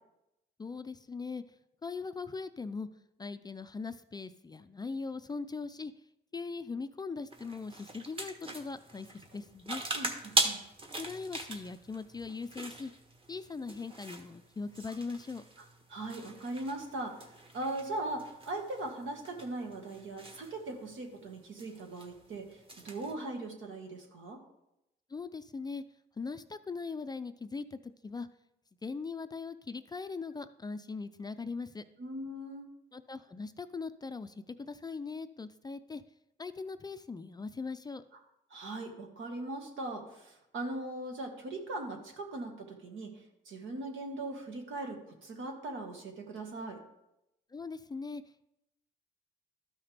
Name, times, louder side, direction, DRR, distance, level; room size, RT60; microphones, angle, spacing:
voice 1, 0.6-1.4 1.8-2.9 3.2-5.9 6.3-9.8 11.0-12.9 13.3-15.4 25.1-25.8 26.2-28.3 28.8-31.8 32.9-36.0 36.4-38.0 47.5-48.2, left 4 dB, 20° left, 11 dB, 0.4 m, -40 dB
sound 1, 7.3-23.1, right 1 dB, 25° right, 1.3 m, -40 dB
voice 2, 9.9-10.6 15.9-24.4 32.0-32.7 38.5-46.8, right 2 dB, 75° right, 2 dB, 1.7 m, -40 dB
12.5 x 5.7 x 3.4 m, 0.87 s
cardioid pair, 90°, 20 cm